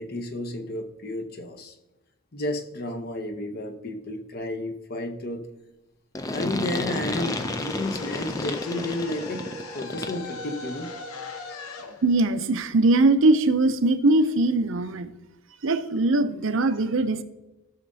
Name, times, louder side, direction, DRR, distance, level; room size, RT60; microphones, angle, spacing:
voice 1, 0.0-1.7 2.3-5.5 6.3-11.0, left 1 dB, 45° left, 6 dB, 0.8 m, -32 dB
sound 1, 6.1-10.3, left 2 dB, 15° left, 0.4 m, -31 dB
sound 2, 7.1-13.2, left 4 dB, 80° left, 0.8 m, -40 dB
sound 3, 7.6-12.0, equal, 10° right, 1.0 m, -43 dB
voice 2, 12.0-15.1 15.6-17.2, right 2 dB, 65° right, 10 dB, 0.6 m, -21 dB
14.0 x 6.5 x 2.7 m, 0.98 s
head